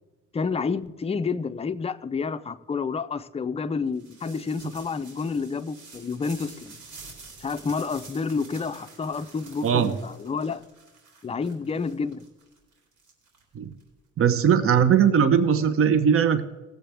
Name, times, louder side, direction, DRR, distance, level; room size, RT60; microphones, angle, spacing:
voice 1, 0.3-6.8 7.4-10.6 11.2-12.3, left 5 dB, 20° left, 0.5 m, -29 dB
sound 1, 3.9-13.8, right 4 dB, 75° right, 3.3 m, -48 dB
voice 2, 9.6-9.9 13.5-13.7 14.2-16.5, right 8 dB, 45° right, 0.8 m, -20 dB
18.5 x 7.8 x 3.4 m
cardioid pair, 90°, 30 cm